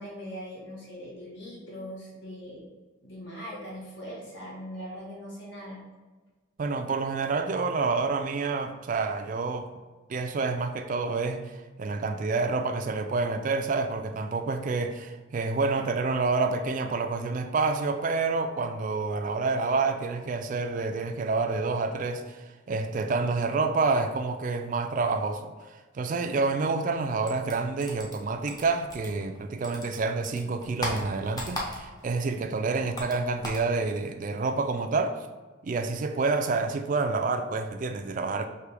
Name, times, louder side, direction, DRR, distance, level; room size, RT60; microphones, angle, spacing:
voice 1, 0.0-2.6 3.0-5.8 32.7-32.9, equal, 60° left, 1.1 m, -41 dB
voice 2, 6.6-9.7 10.1-35.2 35.6-38.5, right 4 dB, 40° right, 0.3 m, -28 dB
sound 1, 27.2-29.4 29.6-32.1 32.4-33.7, left 1 dB, 20° left, 0.6 m, -36 dB
4.6 x 2.8 x 3.3 m
head